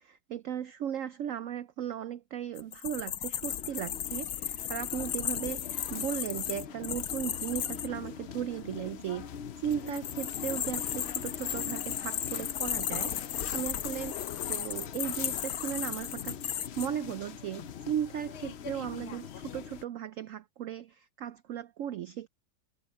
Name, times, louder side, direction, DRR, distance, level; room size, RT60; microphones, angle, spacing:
voice 1, 0.0-22.3, right 10 dB, 80° right, 0.7 m, -37 dB
sound 1, 2.6-7.9 9.7-16.9, left 10 dB, 60° left, 1.1 m, -35 dB
sound 2, 3.4-19.8, left 8 dB, 80° left, 0.5 m, -43 dB
omnidirectional pair, 2.0 m